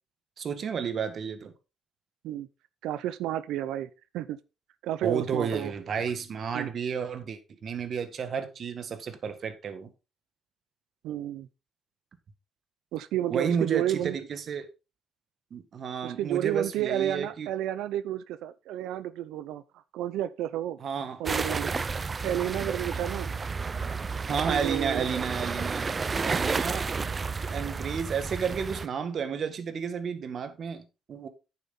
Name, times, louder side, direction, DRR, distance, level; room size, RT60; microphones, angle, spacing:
voice 1, 0.4-1.5 5.0-9.9 13.3-14.7 15.5-17.5 20.8-21.2 24.3-25.9 26.2-26.9 27.5-31.3, right 6 dB, 55° right, 1.7 m, -32 dB
voice 2, 2.8-4.4 4.8-5.7 6.5-6.7 11.0-11.5 12.9-14.2 16.0-19.6 19.9-20.8 21.2-21.7 22.2-23.3 24.5-25.1, right 12 dB, 90° right, 0.6 m, -31 dB
sound 1, 21.3-28.9, right 4 dB, 35° right, 0.5 m, -31 dB
9.4 x 7.4 x 3.8 m
cardioid pair, 90°, 0 cm